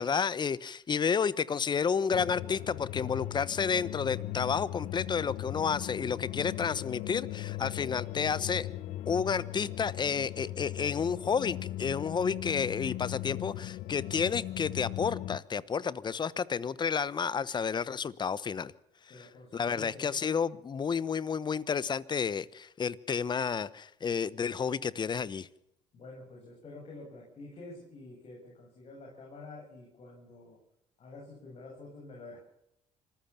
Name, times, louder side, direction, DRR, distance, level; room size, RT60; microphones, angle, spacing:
voice 1, 0.0-8.7 9.1-18.7 19.2-19.3 19.5-25.5, left 6 dB, 35° left, 20 dB, 1.1 m, -31 dB
sound 1, 2.1-15.4, left 15 dB, 70° left, 0.9 m, -38 dB
voice 2, 19.1-20.3 25.9-30.6 31.0-32.4, left 2 dB, 50° left, -1 dB, 7.7 m, -48 dB
26.0 x 15.0 x 7.2 m, 0.81 s
supercardioid pair, 80°, 13 cm